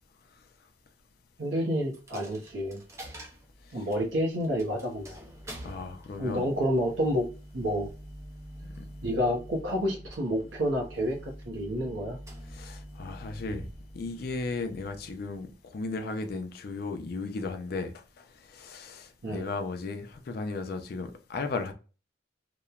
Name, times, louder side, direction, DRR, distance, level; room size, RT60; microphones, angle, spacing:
voice 1, 1.4-2.8 3.7-5.2 6.2-7.3 7.5-7.9 9.0-12.2 19.2-19.5, equal, 85° right, 0.7 m, -29 dB
Coin (dropping), 1.9-15.7, equal, 15° right, 0.5 m, -46 dB
voice 2, 5.6-6.5 8.8-8.9 12.5-13.7 13.9-21.7, left 3 dB, 55° left, 0.4 m, -35 dB
2.9 x 2.1 x 2.3 m
head